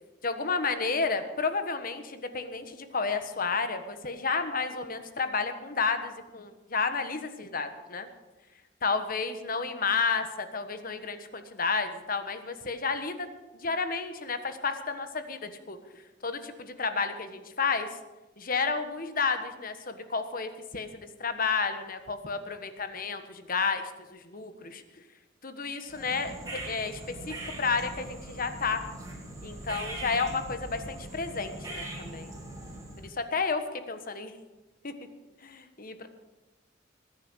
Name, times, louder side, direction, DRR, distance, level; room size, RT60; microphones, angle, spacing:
voice 1, 0.2-8.1 8.8-13.3 13.5-17.9 18.4-24.8 25.4-28.8 29.4-32.3 33.0-33.6 33.9-34.3 34.8-34.9 35.4-36.1, left 4 dB, 45° left, 9 dB, 1.4 m, -31 dB
sound 1, 25.9-33.1, right 1 dB, 15° right, 3.4 m, -41 dB
19.5 x 10.0 x 6.3 m, 1.1 s
head